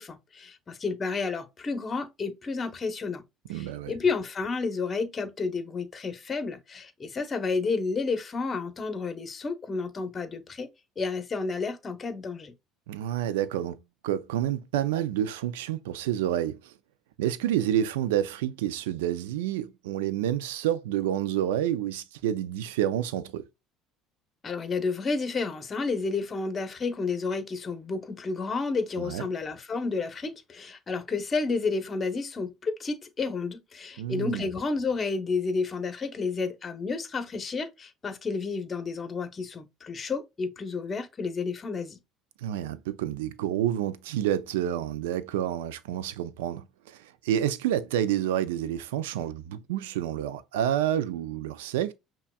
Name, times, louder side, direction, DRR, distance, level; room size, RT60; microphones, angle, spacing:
voice 1, 0.0-3.2 3.5-10.7 11.0-12.5 24.4-42.0, left 4 dB, 35° left, 0.9 m, -31 dB
voice 2, 3.5-4.0 12.9-16.7 17.2-23.5 29.0-29.3 34.0-34.5 42.4-51.9, right 11 dB, 85° right, 0.4 m, -29 dB
5.6 x 2.2 x 2.3 m
supercardioid pair, 80°, 0 cm